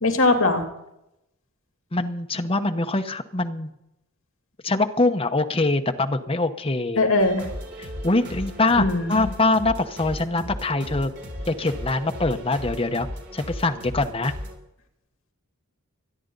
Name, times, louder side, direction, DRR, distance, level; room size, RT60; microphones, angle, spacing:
voice 1, 0.0-0.6 7.0-7.5 8.8-9.3, left 2 dB, 65° left, 3 dB, 2.7 m, -20 dB
voice 2, 1.9-3.7 4.6-7.0 7.8-11.1 11.5-13.1 13.3-14.3, left 2 dB, 25° left, 5 dB, 1.0 m, -23 dB
sound 1, 7.2-14.6, equal, 55° right, 3.6 m, -36 dB
25.0 x 10.0 x 4.0 m, 0.83 s
head